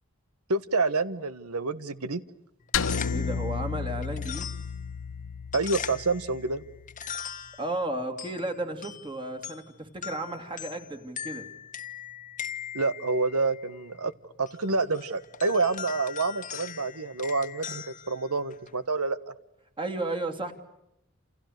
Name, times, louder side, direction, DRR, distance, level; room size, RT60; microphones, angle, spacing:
voice 1, 0.5-2.2 5.5-6.6 12.7-14.1 14.4-19.2, right 3 dB, 85° right, 15 dB, 1.4 m, -28 dB
sound 1, 2.6-18.8, left 8 dB, 35° left, 1.3 m, -41 dB
sound 2, 2.7-7.1, left 6 dB, 65° left, 1.1 m, -33 dB
voice 2, 3.1-4.5 7.6-11.5 19.8-20.5, right 2 dB, 20° right, 7 dB, 2.7 m, -33 dB
29.0 x 29.0 x 6.7 m, 0.85 s
head